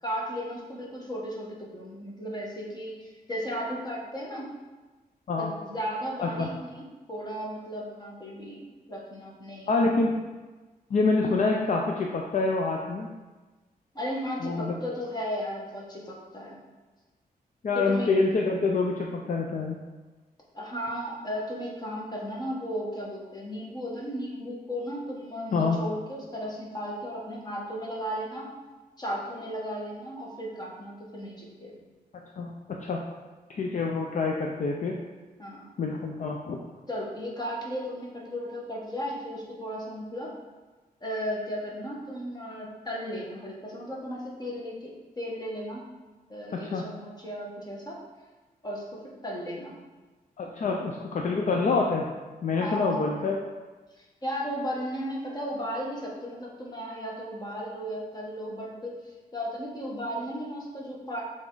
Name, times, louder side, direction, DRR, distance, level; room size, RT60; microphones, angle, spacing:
voice 1, 0.0-4.5 5.4-8.6 8.9-9.8 13.9-16.6 17.7-18.1 20.5-28.6 29.0-31.8 35.4-35.7 36.9-40.3 41.0-45.8 46.3-48.0 48.6-49.7 52.6-53.1 54.0-61.2, equal, 25° left, -4 dB, 1.5 m, -35 dB
voice 2, 9.7-10.1 10.9-13.1 14.4-14.8 17.6-19.8 25.5-25.8 32.4-33.0 33.5-35.0 35.8-36.6 46.5-46.9 50.4-52.1 52.4-53.4, left 3 dB, 55° left, 0 dB, 0.6 m, -26 dB
7.1 x 3.6 x 3.9 m, 1.2 s
wide cardioid pair, 115°, 16 cm